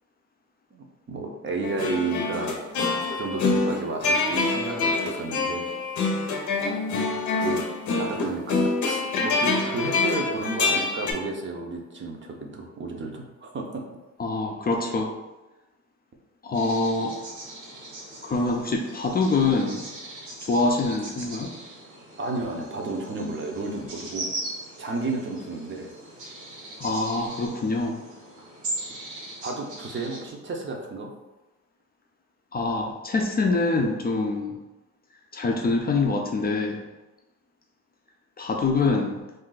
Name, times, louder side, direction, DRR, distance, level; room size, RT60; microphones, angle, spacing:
voice 1, 0.7-2.6 2.9-5.7 7.4-7.6 8.0-13.8 22.2-24.3 24.8-25.9 29.4-31.1, right 3 dB, 40° right, 1 dB, 0.6 m, -32 dB
sound 1, 1.6-11.1, left 3 dB, 75° left, 0.6 m, -26 dB
voice 2, 14.2-15.1 16.4-17.2 18.2-19.8 20.5-21.5 26.8-28.0 32.5-34.6 35.3-36.8 38.4-39.2, left 3 dB, 30° left, 1 dB, 0.4 m, -25 dB
sound 2, 16.5-30.3, right 1 dB, 80° right, 1.2 m, -39 dB
2.5 x 2.2 x 3.8 m, 1.1 s
cardioid pair, 90°, 30 cm